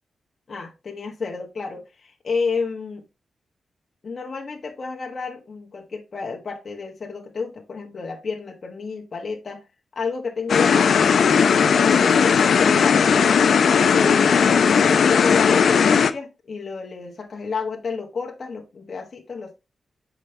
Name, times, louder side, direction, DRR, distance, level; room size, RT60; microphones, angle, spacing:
voice 1, 0.5-3.0 4.0-9.6 9.9-11.1 11.6-13.4 13.9-19.5, left 5 dB, 45° left, 1.3 m, -30 dB
sound 1, 10.5-16.1, left 6 dB, 70° left, 0.6 m, -17 dB
7.5 x 5.0 x 3.3 m
wide cardioid pair, 120°, 0 cm